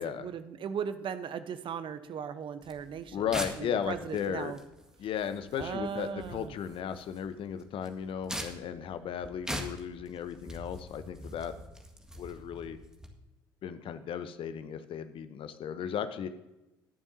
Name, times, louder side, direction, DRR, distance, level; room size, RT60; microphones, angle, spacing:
voice 1, 0.0-3.3 3.6-4.6 5.6-6.5, right 7 dB, 50° right, 12 dB, 0.9 m, -37 dB
sound 1, 2.6-13.1, equal, 5° right, 1.9 m, -43 dB
voice 2, 3.1-4.5 5.0-11.6 12.2-12.8 13.6-16.3, left 8 dB, 50° left, 11 dB, 0.9 m, -35 dB
20.5 x 7.1 x 2.8 m, 0.98 s
hypercardioid pair, 55°, 11 cm